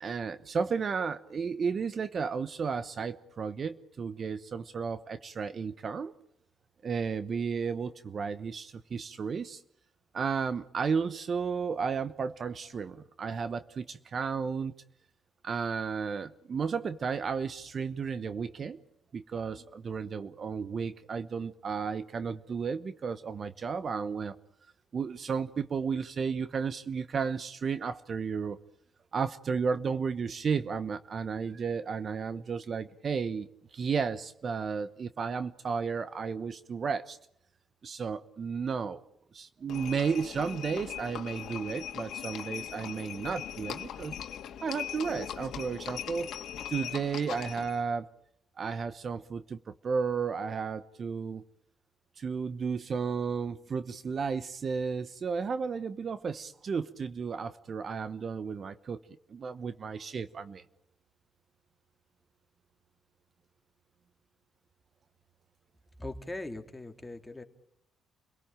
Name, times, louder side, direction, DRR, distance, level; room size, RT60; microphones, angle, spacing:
voice 1, 0.0-6.1 6.8-9.6 10.1-14.7 15.4-18.8 19.1-24.3 24.9-28.6 29.1-37.2 37.8-39.0 39.3-44.1 44.6-46.3 46.7-48.1 48.6-51.4 52.2-59.0 59.3-60.6, right 5 dB, 45° right, 1.0 m, -33 dB
Livestock farm animals working animals, 39.7-47.8, left 10 dB, 75° left, 2.0 m, -40 dB
voice 2, 66.0-67.4, left 2 dB, 15° left, 3.1 m, -40 dB
29.5 x 18.0 x 8.9 m
cardioid pair, 90°, 0 cm